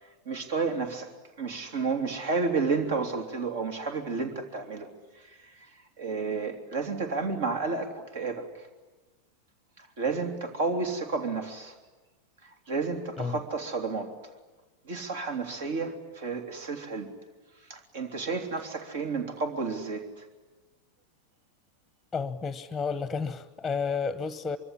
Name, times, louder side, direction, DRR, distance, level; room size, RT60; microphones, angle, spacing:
voice 1, 0.2-1.1 1.4-4.9 6.0-8.5 10.0-11.7 12.7-14.1 14.9-17.1 17.7-20.0, right 4 dB, 55° right, 6 dB, 3.2 m, -31 dB
voice 2, 22.1-24.6, left 5 dB, 10° left, 15 dB, 1.1 m, -31 dB
25.0 x 24.0 x 10.0 m, 1.2 s
figure-of-eight pair, 90°, 0 cm